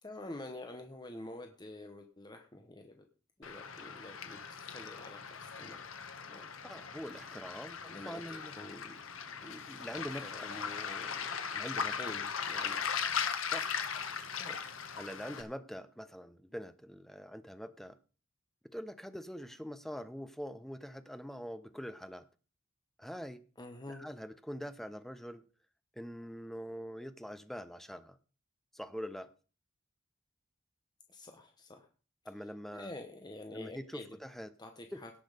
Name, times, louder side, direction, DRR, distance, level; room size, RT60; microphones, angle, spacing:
voice 1, 0.0-3.0 3.4-5.8 6.3-6.5 7.9-9.0 9.4-9.6 9.9-11.5 11.8-12.8 14.4-14.6 23.6-24.0 31.1-31.9 32.7-34.2 34.6-35.1, left 1 dB, 20° left, 4 dB, 1.1 m, -48 dB
Waves surf, 3.4-15.4, left 6 dB, 85° left, 1.5 m, -39 dB
voice 2, 6.6-7.8 8.0-8.6 9.4-10.5 11.5-11.9 13.4-13.7 15.0-18.0 18.7-22.2 23.0-23.4 23.9-25.4 25.9-28.2 28.7-29.3 32.2-32.9 33.5-34.5 34.9-35.0, equal, ahead, 12 dB, 0.7 m, -44 dB
17.0 x 6.2 x 5.1 m, 0.38 s
head